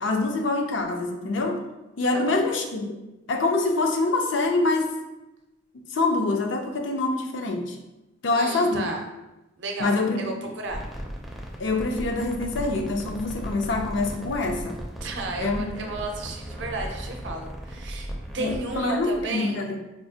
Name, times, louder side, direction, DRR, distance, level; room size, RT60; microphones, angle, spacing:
voice 1, 0.0-1.6 2.0-2.9 3.3-4.9 5.9-7.8 8.2-8.9 9.8-10.3 11.6-14.8 15.4-15.6 18.4-19.8, left 2 dB, 70° left, 3 dB, 0.5 m, -25 dB
voice 2, 2.1-2.4 8.3-9.0 9.6-10.8 15.0-19.6, right 2 dB, 65° right, 2 dB, 0.6 m, -33 dB
sound 1, 10.6-19.2, equal, ahead, 0.4 m, -37 dB
4.7 x 2.4 x 2.7 m, 0.98 s
head